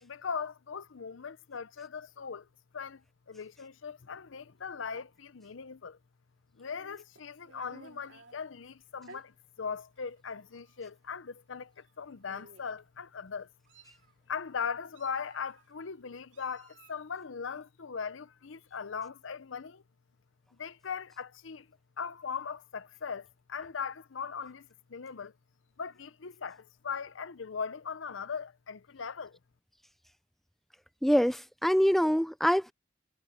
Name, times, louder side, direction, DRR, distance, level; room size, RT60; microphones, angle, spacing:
voice 1, 0.0-2.5 2.7-6.0 6.5-13.5 14.3-19.8 20.6-21.7 22.0-25.3 25.8-29.4, left 6 dB, 80° left, 0.7 m, -39 dB
Meow, 6.7-8.4 9.0-9.2 10.1-10.2 10.6-10.8 11.8-11.9 12.3-12.8 13.4-14.1 14.9-15.7 16.3-17.0, right 3 dB, 75° right, 2.6 m, -55 dB
voice 2, 31.0-32.7, equal, ahead, 0.4 m, -25 dB
head